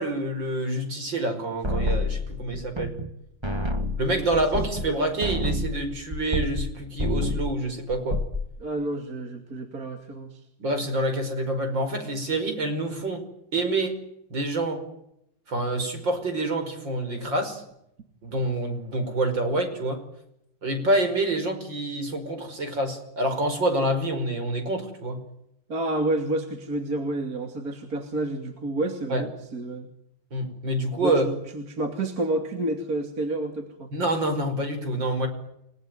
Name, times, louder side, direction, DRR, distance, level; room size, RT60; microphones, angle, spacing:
voice 1, 0.0-2.9 4.0-8.2 10.6-13.2 13.5-14.0 14.3-14.8 15.5-17.6 18.2-20.0 20.6-25.2 29.1-29.3 30.3-31.3 33.9-35.3, right 1 dB, 65° right, 7 dB, 6.1 m, -27 dB
sound 1, 1.6-3.2 3.4-6.7 7.0-7.6 7.9-8.5, left 1 dB, 15° right, 2.1 m, -28 dB
voice 2, 3.7-4.4 4.7-4.8 8.6-10.4 25.7-29.9 31.0-33.9, right 2 dB, 45° right, 5 dB, 3.0 m, -30 dB
30.0 x 19.0 x 9.3 m, 0.78 s
omnidirectional pair, 2.2 m